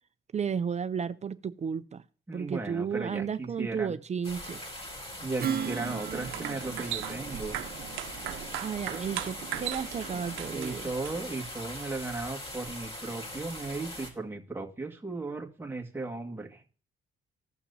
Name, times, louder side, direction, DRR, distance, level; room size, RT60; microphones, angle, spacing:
voice 1, 0.3-2.0 2.3-4.6 8.6-10.9, right 7 dB, 35° right, 0.5 m, -33 dB
voice 2, 2.3-3.9 5.2-7.6 10.1-10.2 10.5-16.6, right 3 dB, 10° right, 1.8 m, -36 dB
sound 1, 4.2-14.1, left 1 dB, 30° left, 3.7 m, -41 dB
Strum, 5.4-10.3, right 8 dB, 50° right, 0.9 m, -39 dB
sound 2, 6.1-11.4, right 12 dB, 85° right, 0.8 m, -39 dB
15.5 x 5.9 x 2.7 m
cardioid pair, 90°, 20 cm